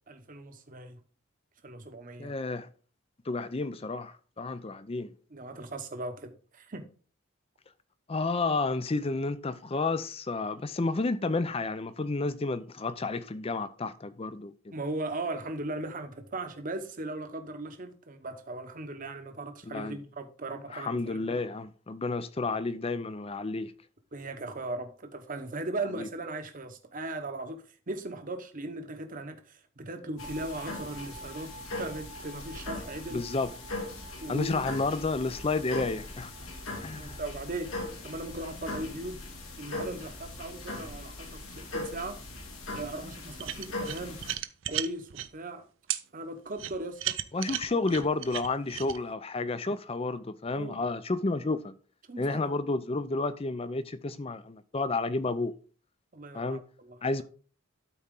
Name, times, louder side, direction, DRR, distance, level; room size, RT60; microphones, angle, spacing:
voice 1, 0.1-1.0 1.6-2.3 5.3-6.9 14.7-21.3 24.1-33.2 34.2-34.7 36.7-37.8 38.0-39.2 39.6-42.2 42.7-44.2 44.7-45.7 46.1-47.2 47.4-47.5 50.5-50.8 52.1-52.6 56.1-57.2, right 2 dB, 40° right, 1.0 m, -38 dB
voice 2, 2.2-2.7 3.3-5.1 8.1-14.7 19.7-20.0 20.7-23.7 26.0-26.1 33.1-33.5 34.3-36.3 36.8-37.2 47.3-51.7 52.2-55.6 56.3-56.6 57.0-57.2, left 3 dB, 25° left, 0.5 m, -31 dB
sound 1, 30.2-44.3, left 2 dB, 80° left, 2.5 m, -40 dB
sound 2, 43.4-45.3 45.9-46.0 46.6-49.0, right 13 dB, 60° right, 0.5 m, -34 dB
12.5 x 4.3 x 3.7 m
head